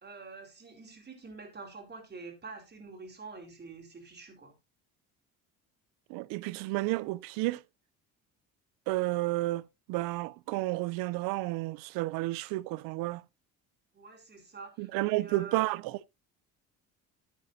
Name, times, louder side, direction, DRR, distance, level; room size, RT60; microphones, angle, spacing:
voice 1, 0.0-4.5 13.9-15.7, right 4 dB, 30° right, 4.3 m, -47 dB
voice 2, 6.1-7.6 8.9-13.2 14.8-16.1, right 19 dB, 90° right, 0.6 m, -31 dB
13.5 x 9.0 x 2.7 m
cardioid pair, 95°, 33 cm